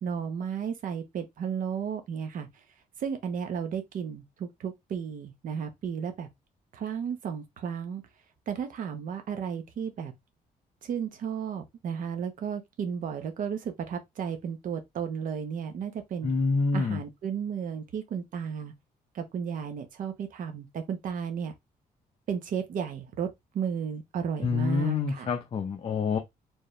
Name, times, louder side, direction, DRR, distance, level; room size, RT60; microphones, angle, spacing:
voice 1, 0.0-2.5 3.0-6.3 6.7-8.0 8.5-10.1 10.8-16.3 16.7-18.7 19.1-21.5 22.3-23.3 23.5-25.3, right 7 dB, 60° right, 1.0 m, -33 dB
voice 2, 16.2-17.0 24.4-26.2, left 4 dB, 35° left, 0.8 m, -27 dB
4.7 x 2.9 x 3.2 m
cardioid pair, 150°, 16 cm